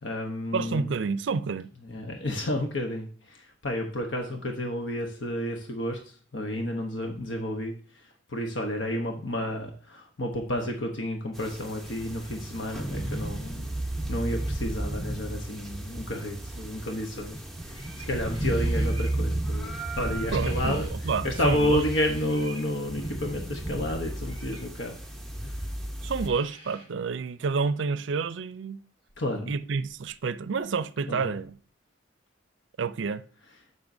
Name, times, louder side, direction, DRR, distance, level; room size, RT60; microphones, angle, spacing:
voice 1, 0.0-0.9 1.9-13.7 14.1-20.9 21.2-25.0 25.4-25.7 29.2-29.5 31.1-31.3, left 1 dB, 75° left, 1.0 m, -31 dB
voice 2, 0.5-1.7 20.3-21.8 26.0-28.8 29.5-31.6 32.8-33.2, right 5 dB, 75° right, 0.5 m, -29 dB
sound 1, 11.3-26.3, right 1 dB, ahead, 0.8 m, -33 dB
sound 2, 17.7-19.2 20.2-20.9 21.2-22.7 24.2-24.7 25.9-26.0 26.2-26.9, right 3 dB, 25° left, 4.5 m, -48 dB
13.0 x 5.5 x 2.7 m
head